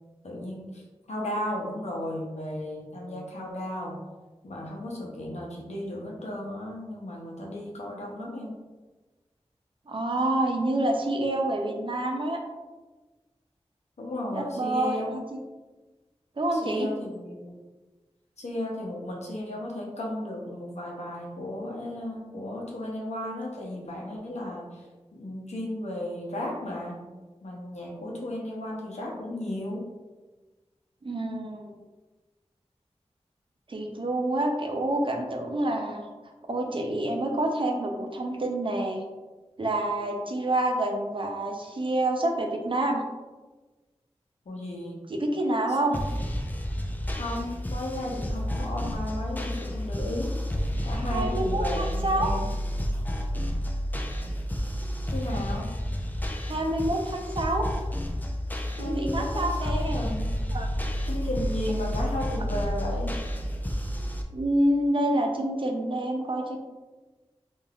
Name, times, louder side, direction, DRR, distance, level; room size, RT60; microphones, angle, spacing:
voice 1, 0.2-0.8 1.1-4.0 4.4-8.6 14.0-15.1 16.5-17.6 18.4-24.8 25.1-27.0 27.4-29.9 44.5-45.0 47.1-50.3 50.8-52.5 55.1-55.7 58.8-60.3 61.1-63.2, left 1 dB, 80° left, -2 dB, 0.7 m, -34 dB
voice 2, 9.9-12.4 14.3-15.4 16.4-16.9 31.0-31.7 33.7-36.0 36.5-39.1 39.6-43.0 45.1-46.0 51.0-52.4 56.4-57.7 58.8-60.0 60.5-60.7 64.3-66.6, right 1 dB, 50° right, 2 dB, 0.5 m, -27 dB
sound 1, 45.9-64.2, equal, 15° left, 0.4 m, -30 dB
3.3 x 2.5 x 2.3 m, 1.2 s
cardioid pair, 40°, 11 cm